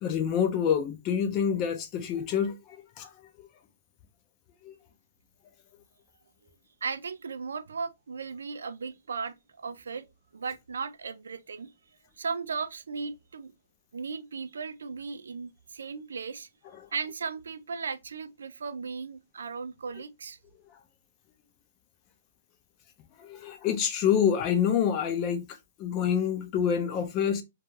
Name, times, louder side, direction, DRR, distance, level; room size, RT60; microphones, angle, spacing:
voice 1, 0.0-2.5 3.0-3.1 3.4-3.5 4.6-4.7 23.2-27.4, left 8 dB, 30° left, 0.4 m, -27 dB
voice 2, 6.8-10.0 10.3-11.7 12.2-13.5 13.9-16.5 16.9-20.4, right 5 dB, 90° right, 0.3 m, -36 dB
2.3 x 2.3 x 3.0 m
hypercardioid pair, 150°, 0 cm